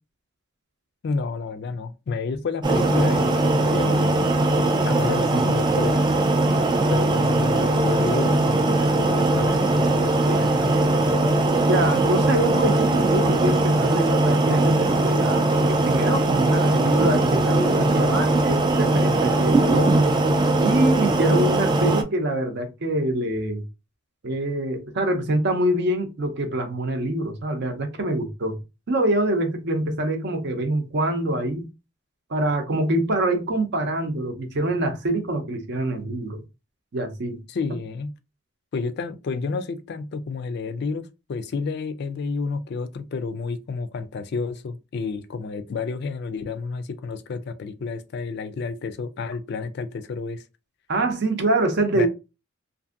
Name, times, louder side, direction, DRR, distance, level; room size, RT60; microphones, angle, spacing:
voice 1, 1.0-4.4 4.8-6.0 6.9-10.5 37.5-38.1 38.7-50.4 51.9-52.1, left 4 dB, 55° left, 0.3 m, -30 dB
sound 1, 2.6-22.0, right 2 dB, 20° right, 0.3 m, -20 dB
voice 2, 11.6-20.1 20.6-23.6 24.2-28.6 28.9-31.7 32.3-36.4 36.9-37.4 50.9-52.1, right 1 dB, 55° right, 0.6 m, -25 dB
2.6 x 2.5 x 2.4 m
head